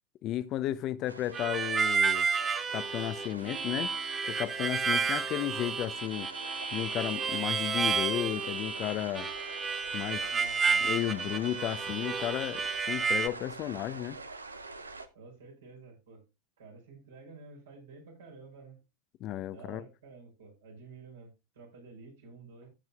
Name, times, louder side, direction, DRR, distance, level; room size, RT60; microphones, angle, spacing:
voice 1, 0.2-2.2 2.7-3.9 4.3-6.3 6.7-9.3 9.9-10.2 10.8-14.2 19.2-19.8, left 13 dB, 45° left, 0.7 m, -33 dB
sound 1, 1.1-15.1, right 3 dB, 90° right, 0.8 m, -46 dB
Harmonica, 1.3-13.3, right 5 dB, 25° right, 0.9 m, -31 dB
voice 2, 10.3-10.9 15.1-16.2 16.6-18.8 19.5-22.7, right 4 dB, 75° right, 5.0 m, -51 dB
15.0 x 7.5 x 2.4 m
figure-of-eight pair, 80°, 0 cm